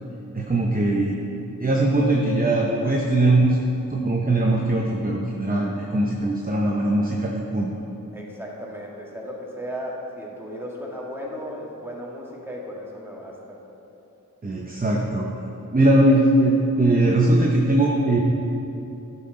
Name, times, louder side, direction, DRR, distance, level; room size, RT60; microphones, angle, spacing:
voice 1, 0.3-1.2 1.6-3.6 3.9-7.7 14.4-15.3 15.7-18.2, right 1 dB, 25° right, -2 dB, 0.8 m, -20 dB
voice 2, 8.1-13.6 16.0-16.1, equal, 5° right, -4 dB, 1.7 m, -35 dB
11.0 x 5.7 x 3.9 m, 2.9 s
wide cardioid pair, 45°, 33 cm